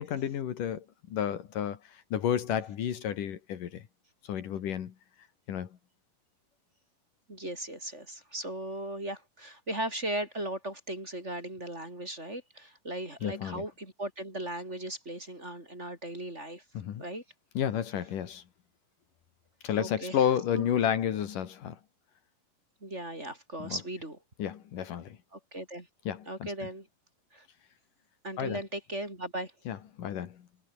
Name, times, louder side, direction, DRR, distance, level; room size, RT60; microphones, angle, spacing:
voice 1, 0.0-3.9 4.2-4.9 5.5-5.7 13.2-13.6 16.7-17.0 17.6-18.4 19.6-21.8 23.6-23.8 24.4-25.2 26.1-26.5 28.4-28.6 29.7-30.5, left 9 dB, 70° left, 3.4 m, -31 dB
voice 2, 7.3-16.6 17.0-17.2 19.8-20.2 20.5-20.7 22.8-24.2 25.3-25.9 26.3-26.9 27.3-27.5 28.2-29.5, right 1 dB, 20° right, 4.6 m, -37 dB
omnidirectional pair, 3.9 m